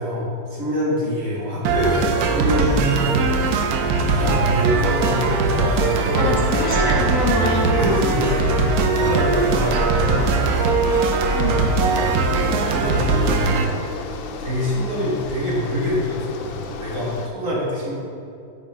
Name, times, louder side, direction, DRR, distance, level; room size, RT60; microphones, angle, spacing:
voice 1, 0.0-3.3 4.0-6.3 6.7-7.0 7.7-10.6 12.2-13.5 14.4-17.9, left 1 dB, 45° right, -6 dB, 2.0 m, -25 dB
sound 1, 1.6-13.6, right 4 dB, 70° right, 0.9 m, -20 dB
voice 2, 6.1-8.0 11.3-11.7, left 1 dB, 50° left, -2 dB, 1.1 m, -25 dB
Bicycle, 6.7-17.3, left 5 dB, 85° left, 1.3 m, -34 dB
sound 2, 8.7-11.3 11.5-15.7, left 2 dB, 35° left, 0.7 m, -40 dB
9.1 x 4.2 x 3.6 m, 2.5 s
omnidirectional pair, 2.0 m